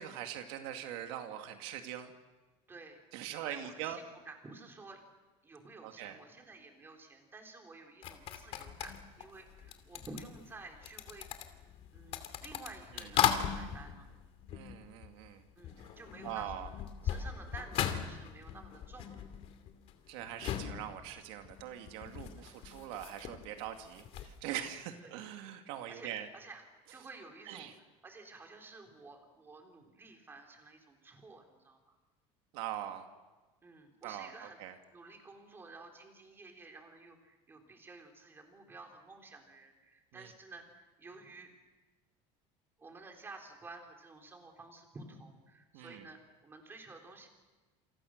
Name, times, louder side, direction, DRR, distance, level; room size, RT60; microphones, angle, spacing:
voice 1, 0.0-2.1 3.1-4.0 5.8-6.2 12.9-13.1 14.5-15.5 15.8-15.9 16.2-16.7 20.1-26.3 27.5-27.7 32.5-33.1 34.0-34.7 40.1-40.3 45.7-46.1, right 11 dB, 85° right, 5 dB, 2.3 m, -42 dB
voice 2, 2.7-3.0 3.4-5.0 5.4-11.3 11.9-14.1 15.6-16.7 17.0-19.2 22.2-22.5 25.0-25.1 25.9-27.7 28.0-32.0 33.6-34.6 34.9-41.5 42.8-47.3, right 3 dB, 15° right, 3 dB, 4.1 m, -52 dB
sound 1, 8.0-15.3 15.6-24.4, left 10 dB, 50° left, 2.6 m, -38 dB
28.0 x 27.0 x 6.6 m, 1.2 s
cardioid pair, 160°, 13 cm